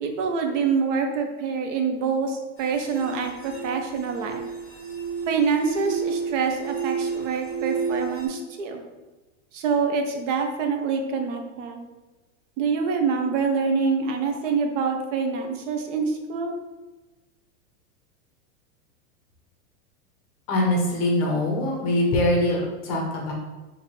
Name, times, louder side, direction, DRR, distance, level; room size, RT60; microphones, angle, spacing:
voice 1, 0.0-4.4 5.3-8.8 9.5-11.9 12.6-16.6, right 5 dB, 70° right, 4 dB, 0.7 m, -26 dB
sound 1, 2.6-8.3, right 6 dB, 15° left, 1.2 m, -31 dB
voice 2, 20.5-23.3, left 1 dB, 30° left, -1 dB, 0.6 m, -23 dB
4.3 x 2.7 x 2.9 m, 1.2 s
supercardioid pair, 170°, 39 cm